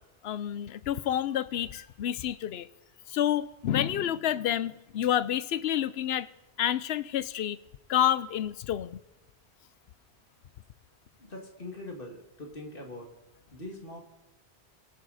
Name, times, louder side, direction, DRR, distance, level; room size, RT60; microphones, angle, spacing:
voice 1, 0.2-2.7 3.1-6.3 6.6-7.6 7.9-9.0, left 11 dB, 70° left, 0.9 m, -29 dB
voice 2, 11.2-13.1 13.5-14.0, left 1 dB, 55° left, 2.3 m, -42 dB
24.5 x 9.2 x 4.1 m
omnidirectional pair, 1.1 m